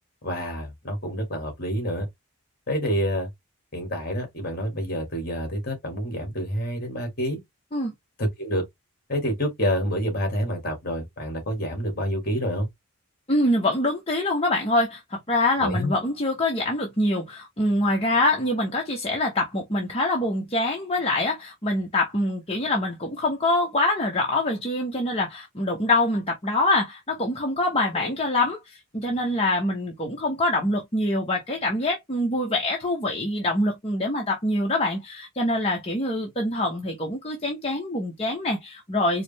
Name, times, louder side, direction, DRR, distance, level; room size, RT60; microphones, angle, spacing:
voice 1, 0.2-2.1 2.7-3.3 3.7-7.4 8.2-8.6 9.1-12.7 15.6-15.9 27.9-28.1, equal, 40° left, 1.8 m, -28 dB
voice 2, 13.3-39.2, left 1 dB, 25° left, 0.8 m, -25 dB
4.8 x 2.1 x 3.3 m
head